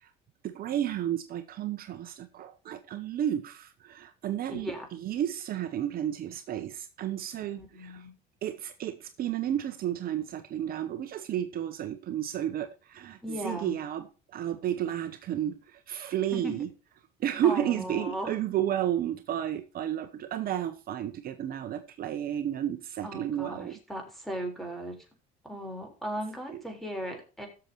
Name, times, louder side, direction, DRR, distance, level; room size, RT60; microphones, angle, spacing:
voice 1, 0.4-8.1 8.4-16.7 17.2-23.8 26.5-26.6, right 11 dB, 55° right, 0.9 m, -32 dB
voice 2, 4.5-4.9 7.6-8.2 13.2-13.7 16.3-16.5 17.4-18.3 23.0-25.0 25.4-27.5, equal, ahead, 4.0 m, -37 dB
16.5 x 6.9 x 3.0 m
supercardioid pair, 95°, 19 cm